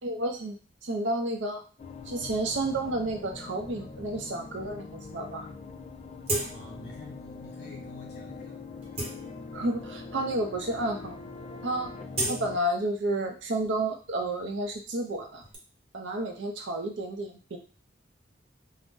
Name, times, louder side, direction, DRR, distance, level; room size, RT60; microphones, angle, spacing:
voice 1, 0.0-0.6 0.8-1.6 2.1-5.5 9.5-11.2 11.6-11.9 12.3-15.4 15.9-17.6, right 1 dB, 70° right, 4 dB, 0.6 m, -31 dB
sound 1, 1.8-12.6, left 3 dB, 35° left, 0.3 m, -43 dB
sound 2, 6.2-6.9 7.3-7.5 8.1-8.2 8.7-9.8 10.5-10.6 10.9-11.2 11.5-13.3 13.6-15.6, right 1 dB, 30° right, 0.8 m, -36 dB
voice 2, 6.5-8.6, left 3 dB, 60° left, -2 dB, 1.1 m, -47 dB
2.6 x 2.1 x 3.6 m, 0.36 s
head